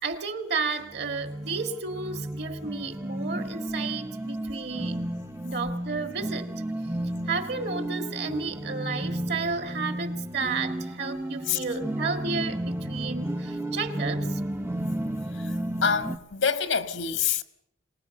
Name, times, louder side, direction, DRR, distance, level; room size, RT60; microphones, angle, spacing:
voice 1, 0.0-5.0 5.4-6.5 7.3-14.4, right 4 dB, 55° right, 2.0 m, -32 dB
sound 1, 0.8-16.2, right 1 dB, 10° right, 0.7 m, -33 dB
voice 2, 15.8-17.4, left 6 dB, 75° left, 1.6 m, -26 dB
24.5 x 20.0 x 6.6 m
head